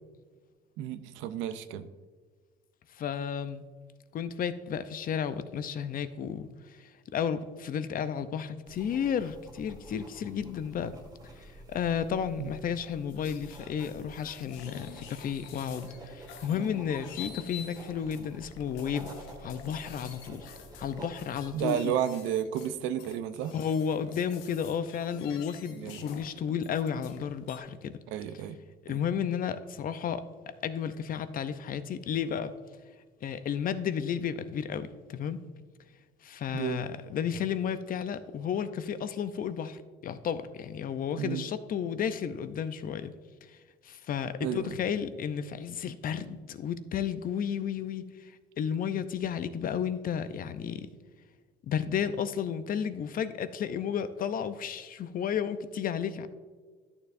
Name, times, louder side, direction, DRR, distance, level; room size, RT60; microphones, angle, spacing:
voice 1, 0.8-1.9 12.4-12.5 21.5-23.5 25.8-26.0 28.1-28.6 28.9-29.0 36.5-36.9 41.2-41.4 44.4-44.7, right 10 dB, 80° right, 12 dB, 0.5 m, -32 dB
voice 2, 2.9-3.6 4.1-11.0 11.4-20.5 20.8-22.0 23.5-28.0 28.8-30.2 30.6-32.5 33.2-35.4 36.2-43.1 43.4-43.6 43.8-50.9 51.6-56.3, left 8 dB, 45° left, 12 dB, 0.5 m, -33 dB
sound 1, 8.7-21.6, right 1 dB, 20° right, 1.6 m, -49 dB
sound 2, 13.1-27.6, left 8 dB, 85° left, 0.8 m, -48 dB
11.0 x 6.9 x 2.5 m, 1.5 s
supercardioid pair, 85°, 19 cm